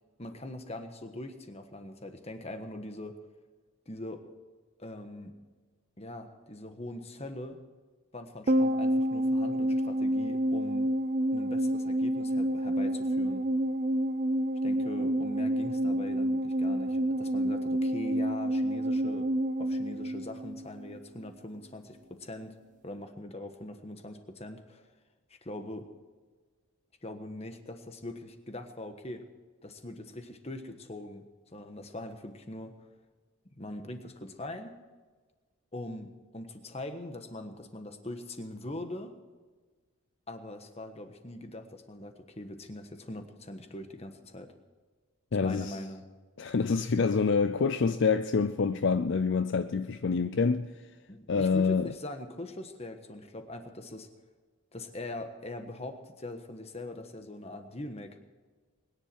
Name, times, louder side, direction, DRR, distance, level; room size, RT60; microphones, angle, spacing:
voice 1, 0.2-3.2 3.9-4.3 4.8-5.3 6.0-7.6 8.1-10.9 11.3-13.4 14.6-19.3 19.6-22.6 22.8-24.9 25.4-25.9 27.0-29.2 29.6-31.3 31.5-32.7 33.6-34.7 35.7-39.1 40.3-44.5 45.4-46.0 51.1-54.1 54.7-58.2, left 1 dB, 30° left, 1.3 m, -42 dB
sound 1, 8.5-21.0 21.2-21.3, right 1 dB, 35° right, 0.5 m, -28 dB
voice 2, 45.3-45.8 46.4-50.9 51.3-51.9, left 5 dB, 55° left, 0.5 m, -27 dB
22.0 x 10.5 x 4.7 m
head